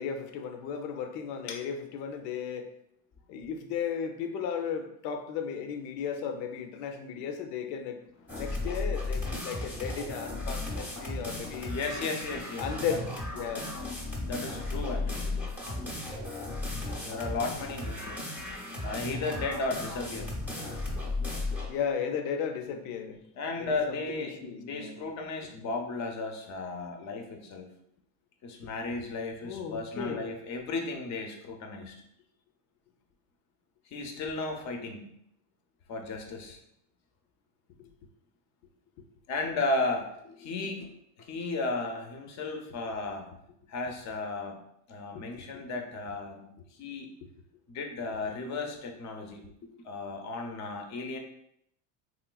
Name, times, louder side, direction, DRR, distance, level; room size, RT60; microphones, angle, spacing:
voice 1, 0.0-2.7 3.3-8.0 8.3-11.7 12.6-13.0 13.3-13.8 21.7-23.2 23.6-25.0 28.6-28.7 29.4-30.3 37.8-37.9 45.3-45.4, left 7 dB, 90° left, 6 dB, 0.6 m, -35 dB
sound 1, 8.3-21.8, left 2 dB, 5° right, 0.6 m, -35 dB
voice 2, 10.8-11.2 11.7-13.0 14.1-16.3 16.7-20.3 23.4-27.7 28.4-31.9 33.9-35.1 35.9-36.6 39.3-40.9 41.2-43.3 43.7-44.6 44.9-46.5 46.8-47.1 47.7-51.2, left 3 dB, 35° left, 3 dB, 0.6 m, -35 dB
3.1 x 3.0 x 2.3 m, 0.74 s
supercardioid pair, 125°, 48 cm